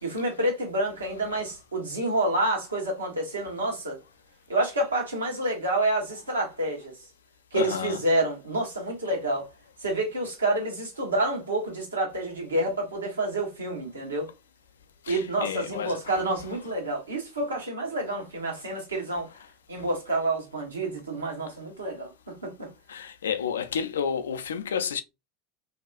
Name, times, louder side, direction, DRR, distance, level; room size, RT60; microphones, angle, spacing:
voice 1, 0.0-4.0 4.5-7.0 7.5-9.5 9.8-14.3 15.1-19.3 19.7-22.7, right 1 dB, 80° right, 1.0 m, -28 dB
voice 2, 7.5-8.0 15.1-16.2 22.9-25.0, left 7 dB, 70° left, 0.3 m, -30 dB
2.6 x 2.2 x 2.3 m
figure-of-eight pair, 80°, 0 cm